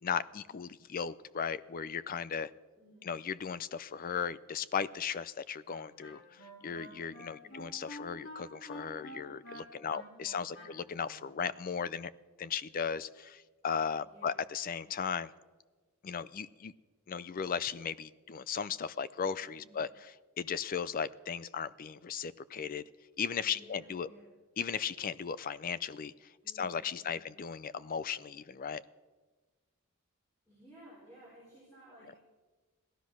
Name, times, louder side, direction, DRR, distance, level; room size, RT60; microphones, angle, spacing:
voice 1, 0.0-2.5 3.0-12.1 12.4-15.3 16.0-16.7 17.1-19.9 20.4-22.8 23.2-24.1 24.6-26.1 26.6-28.8, left 7 dB, 40° left, 18 dB, 0.4 m, -36 dB
voice 2, 2.8-3.1 7.4-7.6 9.8-10.7 14.0-14.4 19.6-19.9 23.4-24.3 26.4-27.3 30.5-32.2, equal, 15° left, -7 dB, 4.9 m, -57 dB
Wind instrument woodwind instrument, 5.7-11.3, equal, 65° left, 4.3 m, -49 dB
16.5 x 12.5 x 6.1 m, 1.3 s
head